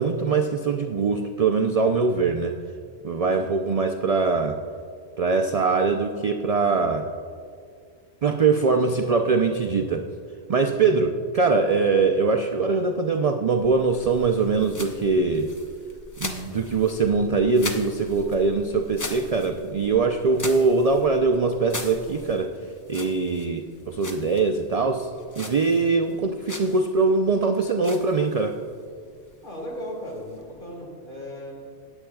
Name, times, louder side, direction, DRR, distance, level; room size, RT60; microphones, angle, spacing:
voice 1, 0.0-2.5 3.0-4.6 5.2-7.1 8.2-10.1 10.5-15.5 16.2-22.5 22.9-25.1 25.4-28.6, right 4 dB, 60° right, 5 dB, 0.4 m, -22 dB
sound 1, 13.6-30.8, left 2 dB, 20° left, 0.5 m, -41 dB
voice 2, 29.4-31.5, equal, 45° left, -2 dB, 2.1 m, -37 dB
18.5 x 7.9 x 2.3 m, 2.2 s
omnidirectional pair, 1.2 m